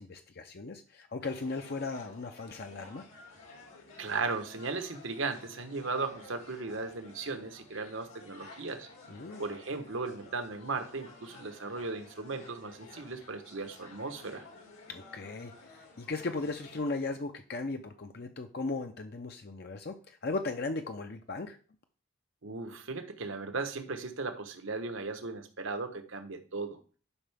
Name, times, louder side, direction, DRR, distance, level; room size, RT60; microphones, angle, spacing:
voice 1, 0.0-3.0 9.1-9.4 14.9-21.6, left 3 dB, 50° left, 6 dB, 0.6 m, -37 dB
sound 1, 1.2-17.0, left 2 dB, 85° left, 2.6 m, -53 dB
voice 2, 4.0-8.9 9.4-14.4 22.4-26.8, right 3 dB, 70° right, 7 dB, 1.1 m, -37 dB
11.5 x 5.5 x 3.5 m, 0.38 s
head